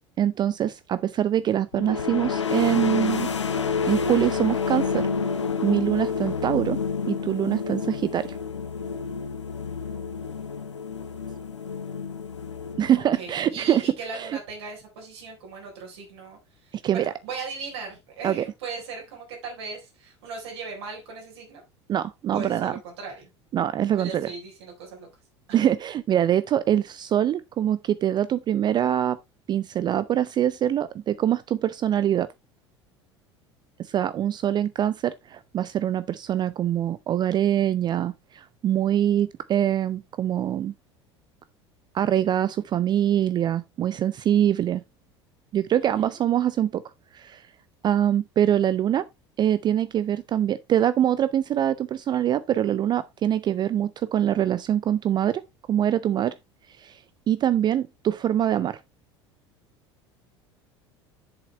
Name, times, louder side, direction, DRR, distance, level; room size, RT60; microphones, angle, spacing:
voice 1, 0.2-3.3 3.9-5.0 5.6-6.8 7.1-8.4 12.8-13.8 14.1-14.4 16.8-17.1 18.2-18.4 21.9-22.7 23.5-24.3 25.5-29.2 29.5-32.3 33.8-40.7 41.9-44.8 45.5-46.8 47.1-47.4 47.8-49.1 49.4-55.4 55.7-56.3 56.8-58.8, right 10 dB, 30° right, 0.4 m, -24 dB
sound 1, 1.7-13.3, left 5 dB, 80° left, 0.8 m, -29 dB
voice 2, 13.2-21.6 22.3-23.3 23.9-25.1 25.5-25.6 45.9-46.2, right 4 dB, 65° right, 3.9 m, -38 dB
7.9 x 7.2 x 3.3 m
figure-of-eight pair, 70°, 15 cm